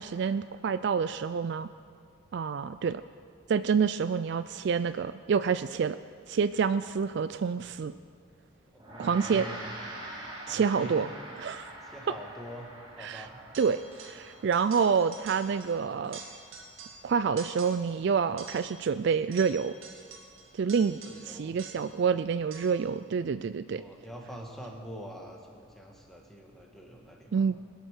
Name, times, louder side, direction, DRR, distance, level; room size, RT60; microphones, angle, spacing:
voice 1, 0.0-1.7 2.3-3.0 3.5-6.0 6.3-7.9 9.0-9.5 10.5-11.1 11.4-11.7 13.0-13.3 13.6-16.2 17.0-19.7 20.5-21.0 21.3-23.8 27.3-27.6, right 6 dB, 55° right, 13 dB, 0.3 m, -28 dB
voice 2, 8.7-9.7 10.4-11.1 11.8-12.7 13.0-13.4 21.0-21.6 23.7-27.5, equal, ahead, 0 dB, 1.6 m, -45 dB
Gong, 8.8-18.4, right 1 dB, 20° right, 2.2 m, -46 dB
sound 1, 13.5-14.3 14.5-15.8 16.0-17.1 17.4-18.0 18.4-22.0 22.5-22.9, right 4 dB, 70° right, 1.9 m, -47 dB
21.0 x 8.2 x 6.6 m, 2.2 s
head